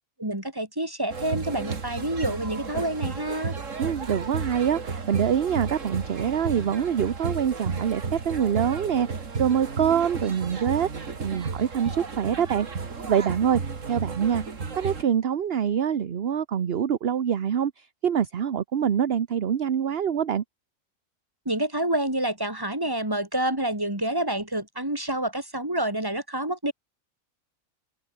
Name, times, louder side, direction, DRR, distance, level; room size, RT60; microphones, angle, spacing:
voice 1, 0.2-3.6 21.5-26.7, right 1 dB, 15° right, 3.7 m, -28 dB
sound 1, 1.1-15.0, right 5 dB, 90° right, 2.5 m, -33 dB
voice 2, 3.8-13.6 13.9-14.4 14.8-20.4, right 8 dB, 55° right, 1.1 m, -25 dB
omnidirectional pair, 1.3 m